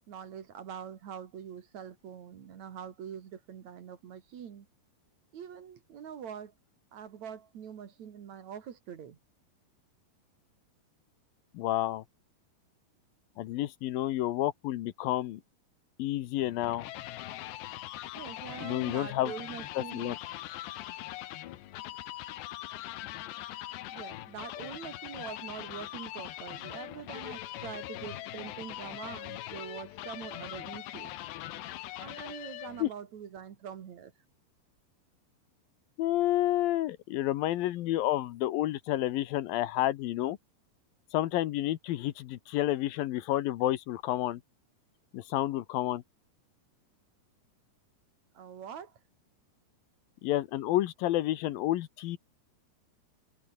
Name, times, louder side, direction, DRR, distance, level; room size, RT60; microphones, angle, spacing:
voice 1, 0.1-4.7 5.3-6.5 6.9-9.2 18.1-20.2 23.9-31.2 32.0-34.1 48.3-49.0, right 8 dB, 50° right, 2.8 m, -44 dB
voice 2, 11.5-12.0 13.4-15.4 16.0-16.9 18.6-19.3 19.8-20.2 32.8-32.9 36.0-40.4 41.1-44.4 45.1-46.0 50.2-52.2, left 14 dB, 70° left, 2.5 m, -30 dB
sound 1, 16.4-32.9, left 15 dB, 85° left, 3.5 m, -42 dB
omnidirectional pair, 4.8 m